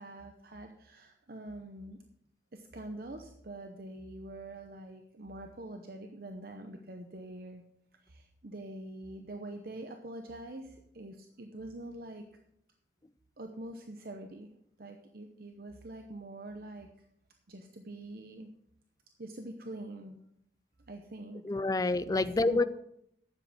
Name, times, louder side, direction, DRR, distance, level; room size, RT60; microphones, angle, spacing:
voice 1, 0.0-2.0 2.5-7.6 8.0-12.2 13.4-14.5 14.8-17.1 17.5-18.5 19.2-20.2 20.9-21.6 22.1-22.6, right 1 dB, 55° right, 5 dB, 0.8 m, -45 dB
voice 2, 21.4-22.6, left 2 dB, 20° left, 14 dB, 0.4 m, -27 dB
10.5 x 7.4 x 6.1 m, 0.75 s
head